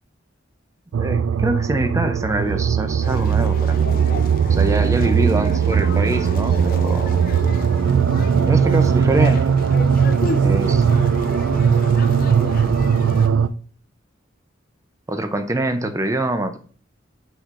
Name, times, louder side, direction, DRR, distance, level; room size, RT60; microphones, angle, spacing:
voice 1, 0.9-3.9 4.5-7.3 8.4-9.5 10.4-10.8 15.1-16.6, right 1 dB, 15° right, 8 dB, 0.5 m, -24 dB
sound 1, 0.9-13.5, right 7 dB, 85° right, 0.3 m, -18 dB
sound 2, 3.0-13.3, left 3 dB, 45° left, 0.5 m, -33 dB
voice 2, 10.3-13.5, right 1 dB, 45° right, -1 dB, 0.9 m, -36 dB
6.4 x 6.3 x 2.5 m, 0.43 s
head